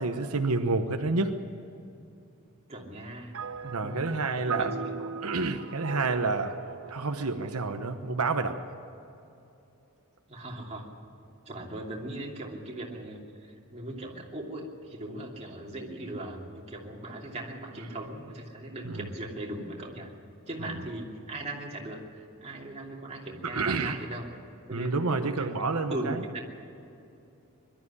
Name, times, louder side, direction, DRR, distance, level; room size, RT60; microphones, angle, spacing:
voice 1, 0.0-1.3 3.6-4.8 5.2-6.6 6.9-8.6 18.8-19.1 23.5-24.0 24.7-26.2, right 3 dB, 85° right, 6 dB, 1.0 m, -29 dB
voice 2, 2.7-3.4 3.8-5.1 10.3-10.9 11.5-20.1 20.5-24.3 24.7-26.4, right 1 dB, 30° right, -1 dB, 2.8 m, -39 dB
sound 1, 3.3-8.9, right 6 dB, 70° right, 0.8 m, -40 dB
22.0 x 12.5 x 9.9 m, 2.8 s
head